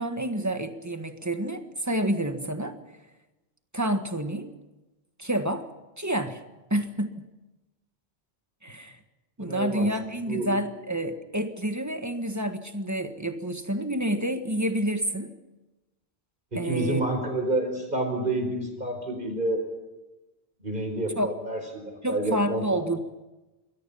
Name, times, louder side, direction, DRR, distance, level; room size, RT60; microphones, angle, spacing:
voice 1, 0.0-2.8 3.7-4.5 5.2-5.7 6.0-6.4 6.7-7.3 8.6-9.0 9.4-15.3 16.6-17.0 21.2-21.3 22.0-23.0, right 1 dB, 15° right, 7 dB, 1.6 m, -28 dB
voice 2, 9.4-9.9 10.3-10.5 16.5-19.6 20.6-22.8, right 2 dB, 50° right, 5 dB, 5.1 m, -29 dB
27.0 x 22.0 x 5.7 m, 1.1 s
omnidirectional pair, 1.0 m